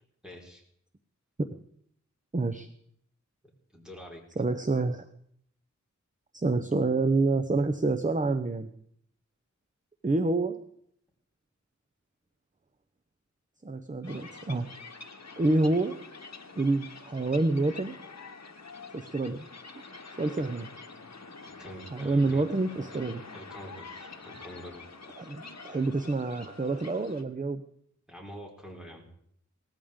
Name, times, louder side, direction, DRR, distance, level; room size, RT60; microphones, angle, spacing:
voice 1, 0.2-0.6 3.7-4.2 21.4-22.4 23.3-24.8 28.1-29.1, equal, ahead, -1 dB, 4.6 m, -46 dB
voice 2, 2.3-2.7 4.4-5.1 6.3-8.7 10.0-10.6 13.6-14.7 15.4-16.0 16.6-17.9 18.9-19.5 20.2-20.7 21.9-23.2 25.2-27.6, right 3 dB, 25° right, 9 dB, 0.8 m, -27 dB
sound 1, 14.0-27.2, left 4 dB, 60° left, 1.3 m, -47 dB
19.0 x 14.0 x 3.7 m, 0.67 s
wide cardioid pair, 55°, 30 cm